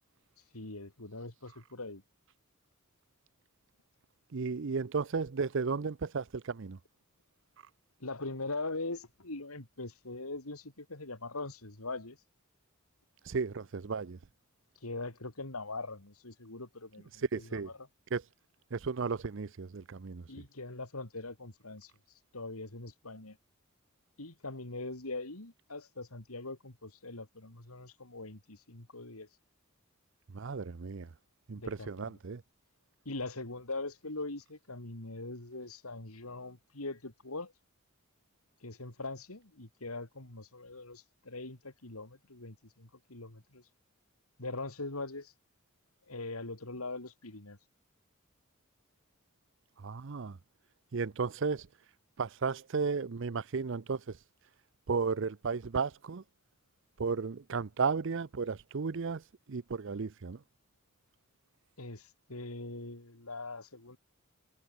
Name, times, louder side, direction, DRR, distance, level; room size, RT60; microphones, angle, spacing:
voice 1, 0.5-2.0 8.0-12.2 14.8-17.9 20.3-21.9 22.3-23.4 24.2-29.3 31.6-32.2 33.0-37.5 38.6-43.6 44.4-45.3 46.1-47.6 61.8-64.0, left 2 dB, 90° left, 3.4 m, -42 dB
voice 2, 4.3-6.8 13.3-14.2 17.3-17.7 18.1-18.2 18.7-20.3 30.3-31.1 31.5-32.4 49.8-50.4 50.9-51.7 52.2-54.2 54.9-56.2 57.0-59.2 59.5-60.4, right 5 dB, 60° right, 0.6 m, -34 dB
head